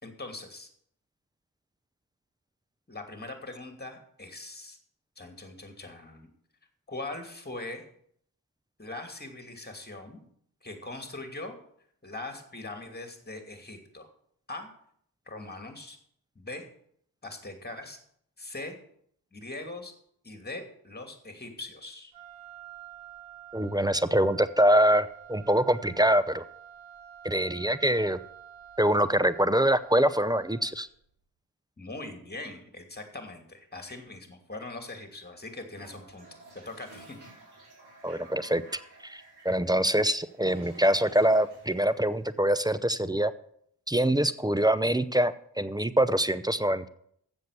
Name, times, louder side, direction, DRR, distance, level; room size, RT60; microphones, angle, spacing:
voice 1, 0.0-0.7 2.9-4.8 5.2-6.3 6.9-7.8 8.8-10.2 10.6-11.5 12.0-14.1 14.5-14.7 15.3-16.0 16.3-16.6 17.2-18.0 18.4-18.8 19.3-19.9 20.2-22.1 31.8-36.3 36.5-37.2, left 2 dB, 20° left, 5 dB, 2.7 m, -41 dB
Wind instrument woodwind instrument, 22.1-30.8, right 10 dB, 85° right, 2.1 m, -49 dB
voice 2, 23.5-26.4 27.2-28.2 28.8-30.9 38.0-38.6 39.0-43.3 43.9-46.9, right 1 dB, 10° right, 14 dB, 0.7 m, -24 dB
Toilet flush, 35.7-42.6, right 2 dB, 60° right, 4.9 m, -52 dB
7.5 x 7.1 x 8.2 m, 0.67 s
supercardioid pair, 40°, 43 cm